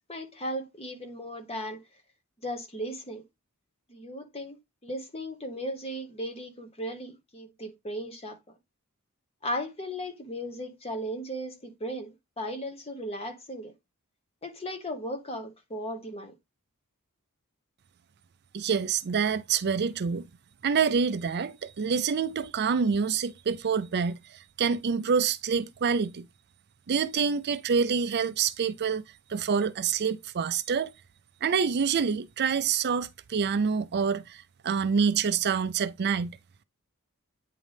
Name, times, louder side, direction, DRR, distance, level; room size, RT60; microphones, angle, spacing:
voice 1, 0.1-1.8 2.4-3.2 3.9-4.6 4.8-8.6 9.4-13.7 14.4-16.3, equal, 30° left, 1.3 m, -36 dB
voice 2, 18.5-20.3 20.6-26.3 26.9-29.0 29.3-30.9 31.4-36.3, right 6 dB, 50° right, 0.5 m, -27 dB
9.0 x 3.8 x 3.4 m
head